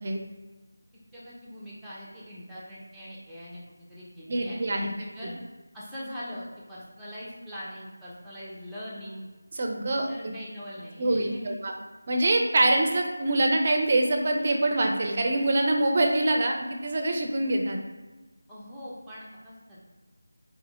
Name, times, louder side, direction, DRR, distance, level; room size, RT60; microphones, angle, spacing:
voice 1, 1.1-5.3 5.7-9.3 10.1-11.6 18.5-19.8, equal, ahead, -10 dB, 0.8 m, -42 dB
voice 2, 4.3-4.9 9.6-10.1 11.0-11.7 12.1-17.8, right 2 dB, 35° right, 2 dB, 0.6 m, -24 dB
4.3 x 3.4 x 3.6 m, 1.2 s
figure-of-eight pair, 170°, 0 cm